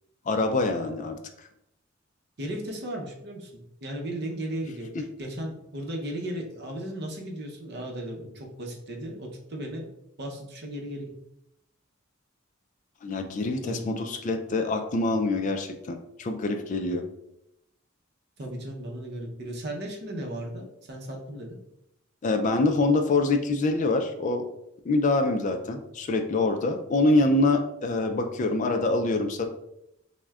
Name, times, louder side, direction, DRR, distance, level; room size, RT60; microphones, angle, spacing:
voice 1, 0.3-1.2 5.0-5.1 13.0-17.0 22.2-24.5 24.8-29.5, left 2 dB, 40° left, 6 dB, 0.3 m, -25 dB
voice 2, 2.4-4.9 5.2-9.8 10.2-11.1 13.6-14.0 18.4-21.6, right 1 dB, 55° right, 1 dB, 0.7 m, -36 dB
6.0 x 2.1 x 2.3 m, 0.80 s
head